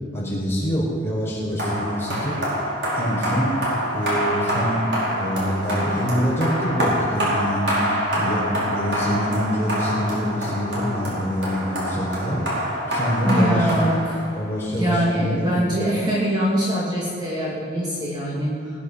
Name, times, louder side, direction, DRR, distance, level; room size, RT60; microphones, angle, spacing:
voice 1, 0.1-2.3 2.9-3.5 3.9-12.4 12.9-13.7 14.3-15.5, equal, 15° left, -6 dB, 4.9 m, -25 dB
sound 1, 1.6-14.6, equal, 75° right, 4.9 m, -26 dB
voice 2, 13.3-14.2 14.7-18.7, equal, 25° right, -6 dB, 2.3 m, -23 dB
19.5 x 9.8 x 5.7 m, 2.1 s
head